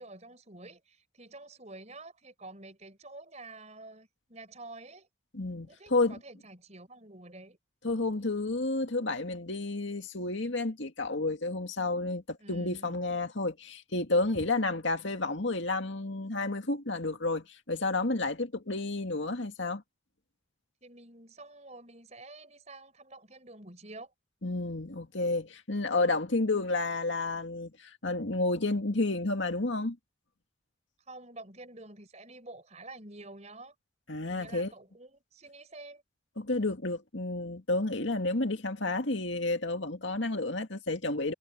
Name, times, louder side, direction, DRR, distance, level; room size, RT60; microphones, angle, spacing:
voice 1, 0.0-5.1 5.6-7.6 12.4-13.0 20.8-24.1 26.5-26.7 31.1-33.7 34.3-36.0, right 2 dB, 35° right, 5.1 m, -49 dB
voice 2, 5.3-6.2 7.8-19.8 24.4-30.0 34.1-34.7 36.4-41.3, left 2 dB, 65° left, 2.2 m, -31 dB
head